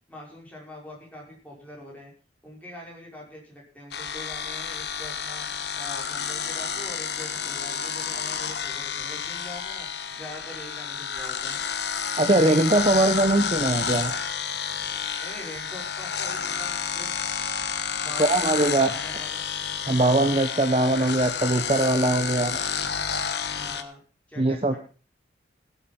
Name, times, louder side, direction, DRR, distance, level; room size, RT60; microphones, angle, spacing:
voice 1, 0.1-2.1 2.4-5.5 5.7-9.9 10.1-11.6 15.2-17.1 18.0-19.4 23.5-24.0 24.3-24.8, left 1 dB, 10° left, -3 dB, 5.7 m, -43 dB
sound 1, 3.9-23.8, left 7 dB, 60° left, 1.2 m, -30 dB
voice 2, 12.2-14.1 18.3-18.9 19.9-22.6 24.4-24.8, right 2 dB, 30° right, 8 dB, 0.8 m, -21 dB
16.5 x 8.3 x 5.9 m, 0.37 s
head